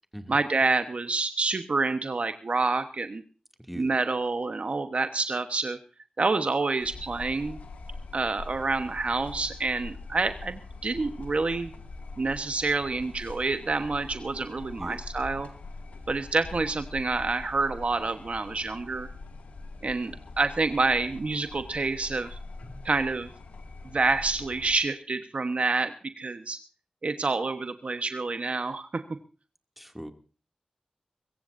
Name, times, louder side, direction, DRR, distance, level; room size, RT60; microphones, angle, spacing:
voice 1, 0.3-3.2 3.7-5.8 6.2-7.6 8.1-11.7 12.2-15.5 16.1-19.1 19.8-22.4 22.8-23.3 23.8-26.6 27.0-29.0, right 3 dB, 60° right, 9 dB, 1.2 m, -28 dB
sound 1, 6.8-24.8, left 3 dB, 90° left, 2.2 m, -43 dB
voice 2, 29.8-30.1, equal, 5° right, 6 dB, 2.5 m, -40 dB
23.5 x 15.0 x 2.7 m, 0.37 s
cardioid pair, 45°, 2 cm